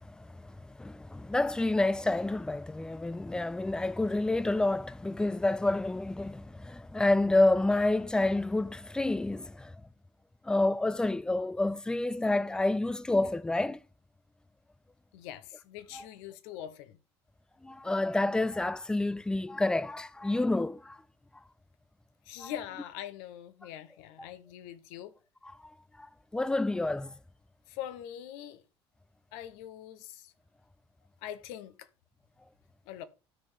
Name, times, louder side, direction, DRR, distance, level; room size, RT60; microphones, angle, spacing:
voice 1, 0.0-9.8 10.4-13.8 15.9-16.0 17.6-21.0 22.4-22.5 25.4-25.5 26.0-27.1, left 2 dB, 5° left, 0.4 m, -29 dB
voice 2, 15.1-17.0 22.3-25.1 27.7-28.6 29.3-30.3 31.2-31.9 32.9-33.1, left 11 dB, 60° left, 0.9 m, -43 dB
13.0 x 4.4 x 3.7 m
figure-of-eight pair, 65°, 14 cm